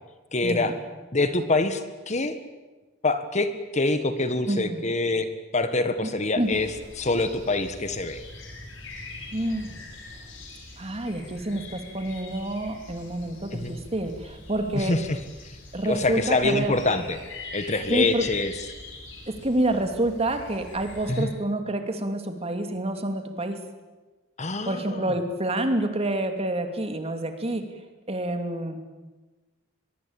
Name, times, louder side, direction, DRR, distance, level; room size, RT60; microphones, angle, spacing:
voice 1, 0.3-0.7 1.1-2.4 3.0-8.2 13.5-13.7 14.7-15.2 15.8-17.2 17.5-18.5 21.1-21.3 24.4-25.1, left 2 dB, 35° left, 10 dB, 1.6 m, -25 dB
voice 2, 4.5-4.8 6.0-6.1 6.4-6.5 9.3-9.8 10.8-15.0 15.7-16.7 17.9-18.3 19.3-23.6 24.7-27.6 28.1-28.8, right 1 dB, 30° right, 6 dB, 2.7 m, -28 dB
sound 1, 6.4-21.3, left 2 dB, 75° left, 5.8 m, -43 dB
23.0 x 22.5 x 8.9 m, 1.2 s
head